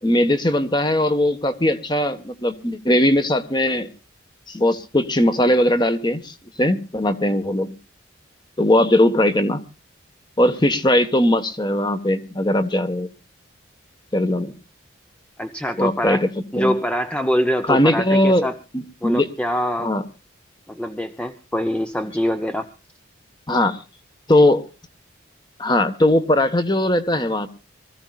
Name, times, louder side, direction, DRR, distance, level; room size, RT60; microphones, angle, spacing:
voice 1, 0.0-3.9 4.5-7.7 8.6-9.6 10.4-13.1 14.1-14.6 15.8-16.3 16.5-16.7 17.6-18.5 18.7-19.3 19.8-20.0 23.5-23.8 24.3-24.6 25.6-27.5, left 1 dB, 20° left, 9 dB, 1.4 m, -19 dB
voice 2, 15.4-16.2 16.5-18.5 19.0-19.9 20.7-22.7, equal, 5° left, 7 dB, 0.8 m, -24 dB
25.0 x 15.0 x 2.4 m, 0.33 s
head